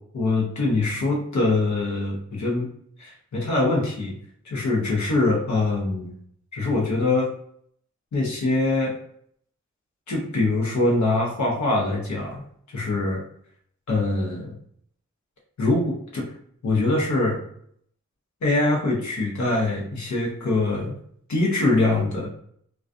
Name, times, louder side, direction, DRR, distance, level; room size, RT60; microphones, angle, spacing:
voice 1, 0.1-2.7 3.0-4.2 4.4-6.1 6.5-7.3 8.1-9.0 10.1-12.4 12.7-13.2 13.9-14.5 15.6-16.3 16.6-17.4 18.4-20.9 21.3-22.3, left 2 dB, 75° left, -2 dB, 0.8 m, -23 dB
2.3 x 2.3 x 2.4 m, 0.64 s
cardioid pair, 40°, 29 cm